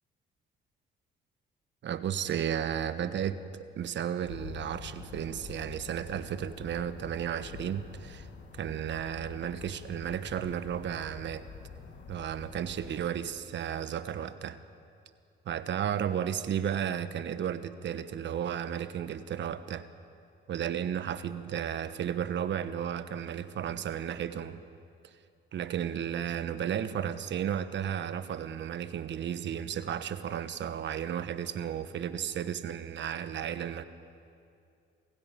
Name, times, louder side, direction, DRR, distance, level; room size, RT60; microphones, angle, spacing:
voice 1, 1.8-8.3 8.5-11.4 12.1-14.6 15.4-19.9 20.5-24.6 25.0-25.1 25.5-33.8, right 9 dB, 65° right, 12 dB, 1.3 m, -33 dB
sound 1, 4.2-13.0, left 6 dB, 65° left, 2.8 m, -47 dB
27.5 x 16.5 x 9.2 m, 2.5 s
cardioid pair, 90°, 20 cm